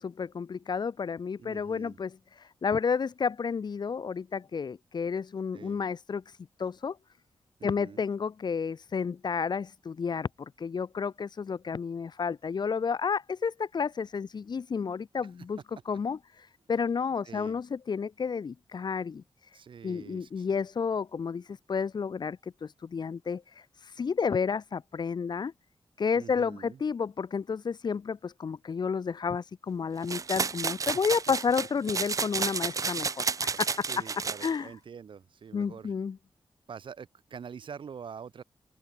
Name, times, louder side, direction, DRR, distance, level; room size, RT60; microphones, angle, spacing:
voice 1, 0.0-2.2 2.6-6.2 6.6-7.0 7.6-15.6 15.9-16.2 16.7-19.2 19.8-21.4 21.7-23.4 24.0-25.5 26.0-33.3 33.6-33.7 34.4-34.7 35.5-36.2, left 6 dB, 55° left, 2.1 m, -31 dB
voice 2, 1.4-2.0 5.5-5.8 7.6-8.0 17.2-17.6 19.5-20.5 26.1-26.8 33.4-35.9 36.7-38.4, right 7 dB, 65° right, 2.8 m, -45 dB
sound 1, 30.1-34.5, right 5 dB, 40° right, 0.6 m, -31 dB
open air
wide cardioid pair, 140°, 9 cm